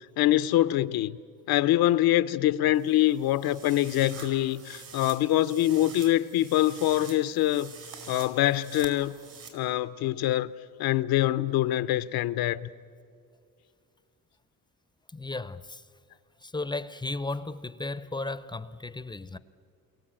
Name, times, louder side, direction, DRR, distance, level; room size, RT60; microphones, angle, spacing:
voice 1, 0.2-1.2 1.5-7.7 8.1-9.2 9.5-10.5 10.8-12.6, left 14 dB, 80° left, 0.8 m, -24 dB
sound 1, 2.7-9.5, right 5 dB, 70° right, 5.5 m, -46 dB
voice 2, 15.1-15.9 16.4-19.4, left 2 dB, 10° left, 0.6 m, -35 dB
29.0 x 22.5 x 8.9 m
cardioid pair, 105°, 36 cm